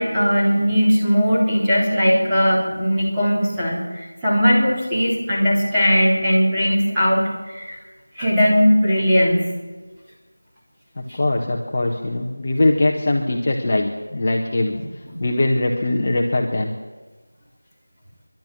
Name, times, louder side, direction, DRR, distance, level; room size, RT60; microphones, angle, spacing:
voice 1, 0.0-7.8 8.2-9.4 11.1-11.2 15.1-15.2, equal, 5° right, -12 dB, 3.8 m, -19 dB
voice 2, 11.0-14.7 15.2-16.7, left 2 dB, 25° left, 0 dB, 1.4 m, -21 dB
27.0 x 12.0 x 9.0 m, 1.3 s
figure-of-eight pair, 175°, 0 cm